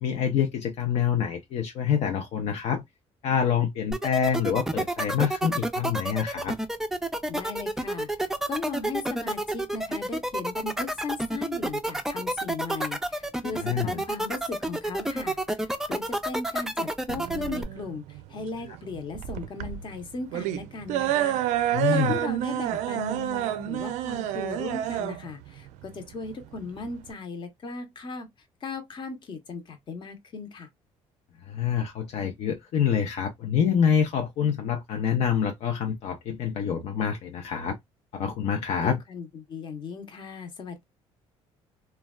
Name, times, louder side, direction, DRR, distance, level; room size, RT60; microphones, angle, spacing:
voice 1, 0.0-2.8 3.2-6.6 13.5-14.0 21.7-22.1 31.5-37.8 38.1-39.0, left 7 dB, 65° left, 0.5 m, -26 dB
sound 1, 3.9-17.6, right 1 dB, 5° right, 0.4 m, -29 dB
voice 2, 7.3-8.1 8.5-28.3 28.6-30.7 38.8-40.8, left 4 dB, 45° left, 0.8 m, -37 dB
sound 2, 17.1-27.1, right 13 dB, 85° right, 0.4 m, -29 dB
3.1 x 2.2 x 2.2 m
cardioid pair, 125°, 12 cm